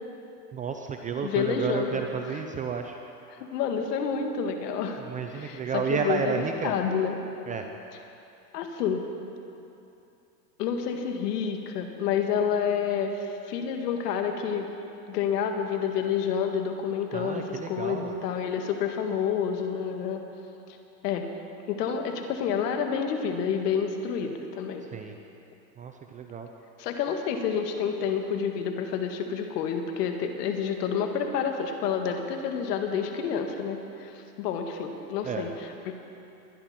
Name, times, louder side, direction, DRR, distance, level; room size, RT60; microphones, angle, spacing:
voice 1, 0.5-3.0 5.1-6.7 7.5-7.6 17.1-18.1 24.9-25.2 25.8-26.5 35.2-35.5, right 6 dB, 15° right, 4 dB, 0.5 m, -31 dB
voice 2, 1.2-2.0 2.3-2.4 3.3-5.0 5.3-7.2 7.9-8.0 8.5-9.1 10.6-14.7 15.1-20.2 21.0-21.3 21.7-24.8 26.8-36.0, left 7 dB, 75° left, 4 dB, 1.8 m, -29 dB
22.0 x 10.5 x 4.3 m, 2.8 s
supercardioid pair, 130°, 48 cm